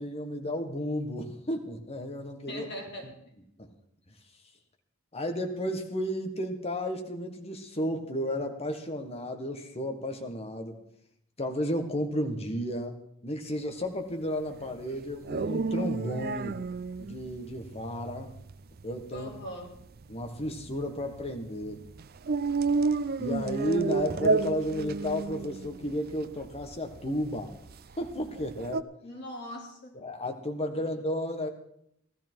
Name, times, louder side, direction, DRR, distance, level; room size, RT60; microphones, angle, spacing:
voice 1, 0.0-2.7 3.0-3.1 3.6-3.7 5.1-10.8 11.4-16.6 17.0-18.3 18.8-19.3 20.1-21.8 23.2-27.5 28.0-28.8 29.9-31.5, equal, 30° left, 5 dB, 1.6 m, -33 dB
voice 2, 2.5-3.1 19.1-19.7 29.0-30.0, left 1 dB, 55° left, 0 dB, 3.4 m, -40 dB
sound 1, 14.5-28.8, right 3 dB, 50° right, 0.5 m, -32 dB
16.5 x 13.5 x 4.6 m, 0.73 s
head